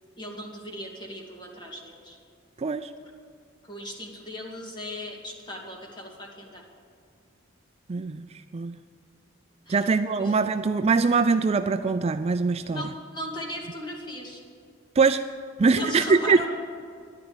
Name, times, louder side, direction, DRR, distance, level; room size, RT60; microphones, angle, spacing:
voice 1, 0.2-2.2 3.6-6.6 9.7-9.9 10.2-10.3 12.7-14.4 15.7-16.5, equal, 25° left, 0 dB, 2.4 m, -37 dB
voice 2, 2.6-2.9 7.9-8.8 9.7-12.9 15.0-15.3 15.6-16.5, right 4 dB, 30° right, 9 dB, 0.4 m, -23 dB
13.0 x 11.0 x 8.9 m, 2.2 s
head